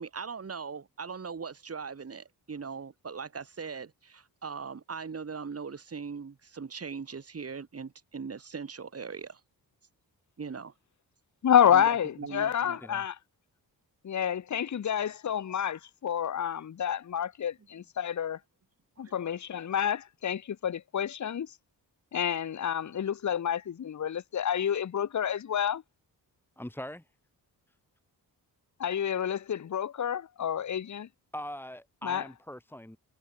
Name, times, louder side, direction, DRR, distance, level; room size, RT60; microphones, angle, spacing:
voice 1, 0.0-9.4 10.4-10.7 11.7-12.8 19.0-19.3, right 5 dB, 40° right, 3.4 m, -40 dB
voice 2, 11.4-13.1 14.0-18.4 19.0-21.5 22.1-25.8 28.8-31.1 32.0-32.2, left 9 dB, 50° left, 1.0 m, -29 dB
voice 3, 26.6-27.0 31.3-33.0, equal, 5° left, 3.4 m, -41 dB
wide cardioid pair, 130°, 38 cm